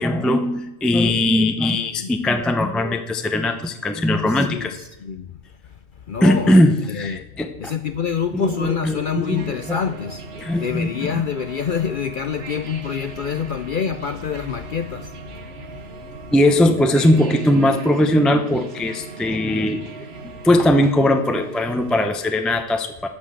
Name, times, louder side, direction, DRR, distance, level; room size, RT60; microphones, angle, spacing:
voice 1, 0.0-4.8 6.2-7.7 8.3-9.8 10.4-11.2 16.3-19.8 20.4-23.1, left 1 dB, ahead, 0.6 m, -19 dB
voice 2, 1.8-2.1 4.3-5.4 6.1-6.6 6.9-7.3 7.6-10.2 10.6-15.8, left 7 dB, 55° left, 0.6 m, -27 dB
sound 1, 9.2-22.1, right 4 dB, 55° right, 1.4 m, -39 dB
11.5 x 6.2 x 7.6 m
omnidirectional pair, 1.3 m